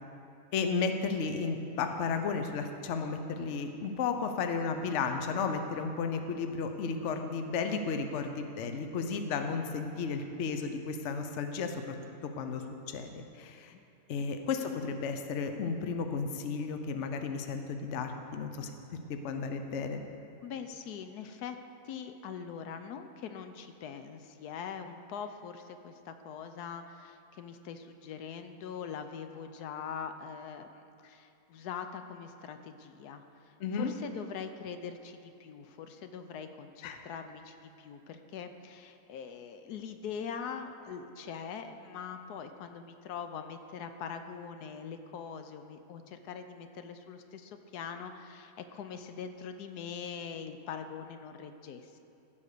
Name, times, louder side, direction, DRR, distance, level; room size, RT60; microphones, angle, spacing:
voice 1, 0.5-11.9 12.2-13.7 14.1-18.7 19.1-20.0 33.6-34.0 36.8-37.0, left 5 dB, 55° left, 6 dB, 0.9 m, -33 dB
voice 2, 20.4-21.6 21.8-30.7 31.0-51.9, left 7 dB, 80° left, 8 dB, 1.2 m, -42 dB
15.0 x 5.4 x 6.7 m, 2.8 s
omnidirectional pair, 1.7 m